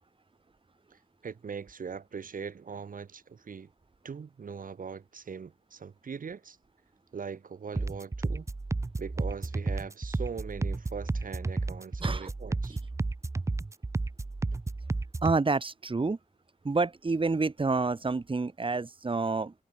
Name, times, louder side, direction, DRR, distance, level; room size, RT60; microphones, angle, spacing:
voice 1, 1.2-3.7 4.0-6.6 7.1-8.5 9.0-12.7, right 6 dB, 70° right, 1.1 m, -41 dB
sound 1, 7.8-15.4, right 3 dB, 20° right, 0.4 m, -32 dB
voice 2, 12.0-12.3 15.2-16.2 16.6-19.5, right 3 dB, 35° right, 1.2 m, -28 dB
cardioid pair, 50°, 15 cm